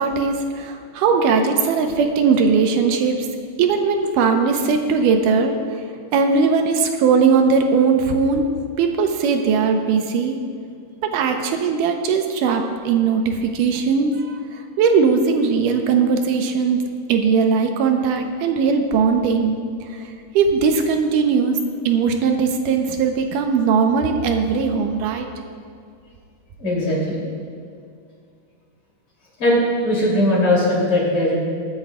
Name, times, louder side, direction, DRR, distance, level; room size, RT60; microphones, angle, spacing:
voice 1, 0.0-3.3 3.6-5.5 6.1-8.5 8.8-10.4 11.0-14.4 14.8-16.8 17.1-19.6 20.4-21.6 21.9-25.3, right 5 dB, 85° right, 4 dB, 2.3 m, -19 dB
voice 2, 26.6-27.2 29.4-31.3, left 1 dB, 45° left, -5 dB, 3.5 m, -19 dB
21.0 x 9.6 x 2.3 m, 2.3 s
omnidirectional pair, 3.8 m